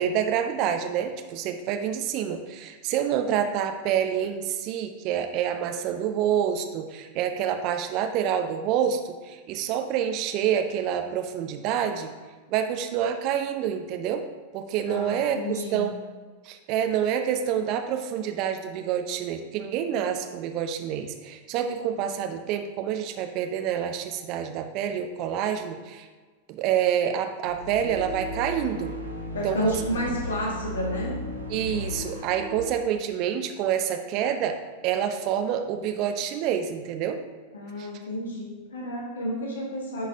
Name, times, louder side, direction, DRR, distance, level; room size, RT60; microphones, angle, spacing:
voice 1, 0.0-12.1 12.5-14.2 14.5-15.9 16.4-26.1 26.5-28.9 29.4-29.8 31.5-34.6 34.8-37.2 37.8-37.9, right 9 dB, 40° right, 6 dB, 0.6 m, -27 dB
voice 2, 14.9-15.9 29.3-31.2 37.5-40.1, left 1 dB, 65° left, -1 dB, 1.2 m, -31 dB
sound 1, 27.4-32.7, equal, 85° right, 0.8 m, -35 dB
10.5 x 4.1 x 2.7 m, 1.4 s
figure-of-eight pair, 90°, 0 cm